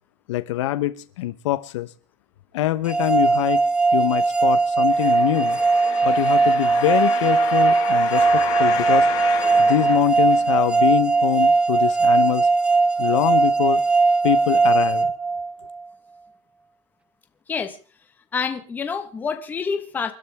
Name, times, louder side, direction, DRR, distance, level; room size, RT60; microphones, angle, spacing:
voice 1, 0.3-1.9 2.5-3.6 3.9-5.6 6.0-9.1 9.6-12.5 13.0-13.8 14.2-15.1, left 15 dB, 85° left, 1.1 m, -24 dB
sound 1, 2.9-15.8, right 4 dB, 5° right, 0.7 m, -19 dB
sound 2, 4.9-10.8 11.4-11.5, left 10 dB, 30° left, 6.7 m, -32 dB
voice 2, 18.3-20.1, left 5 dB, 10° left, 1.3 m, -27 dB
29.0 x 12.5 x 3.6 m
supercardioid pair, 180°, 15 cm